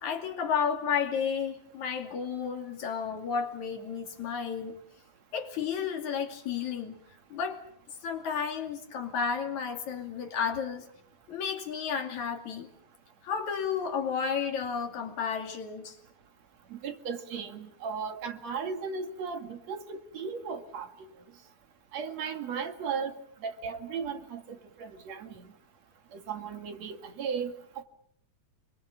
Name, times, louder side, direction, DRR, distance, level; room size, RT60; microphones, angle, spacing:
voice 1, 0.0-4.8 5.3-7.0 7.3-7.6 8.0-10.9 11.3-12.7 13.2-16.0, left 6 dB, 75° left, 5 dB, 3.9 m, -32 dB
voice 2, 16.7-21.1 21.9-23.1 23.4-25.3 26.1-27.5, right 6 dB, 65° right, 7 dB, 3.1 m, -36 dB
27.0 x 24.0 x 7.3 m, 0.66 s
omnidirectional pair, 3.4 m